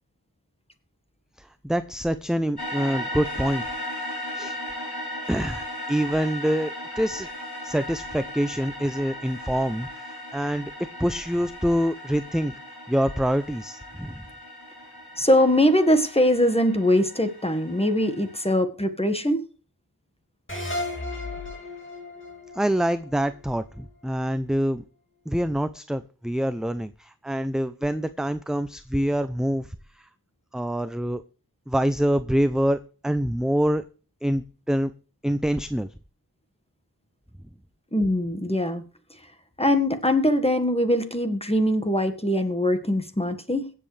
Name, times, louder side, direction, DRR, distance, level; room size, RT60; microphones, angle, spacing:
voice 1, 1.4-3.6 4.4-4.6 5.3-7.3 7.6-10.7 11.0-12.6 12.9-14.2 22.5-24.8 25.3-30.1 30.5-31.2 31.7-33.8 34.2-34.9 35.2-35.9, equal, ahead, 12 dB, 0.5 m, -26 dB
sound 1, 2.6-18.5, left 1 dB, 80° left, 3.6 m, -37 dB
voice 2, 15.2-19.4 37.9-38.8 39.6-43.7, left 1 dB, 15° left, 7 dB, 1.6 m, -22 dB
sound 2, 20.5-23.8, left 2 dB, 30° left, 2.8 m, -34 dB
22.5 x 7.7 x 3.3 m, 0.36 s
wide cardioid pair, 50°, 38 cm